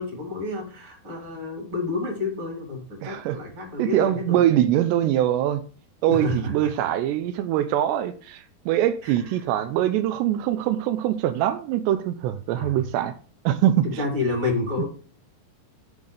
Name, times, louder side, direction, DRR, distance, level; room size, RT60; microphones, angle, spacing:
voice 1, 0.0-4.4 6.1-6.7 9.0-9.1 12.6-12.8 14.0-14.8, left 3 dB, 30° right, 3.9 m, -29 dB
voice 2, 3.0-3.4 3.8-5.6 6.0-13.1 13.5-14.0, right 12 dB, 85° right, 2.7 m, -23 dB
7.9 x 5.4 x 6.5 m
omnidirectional pair, 4.9 m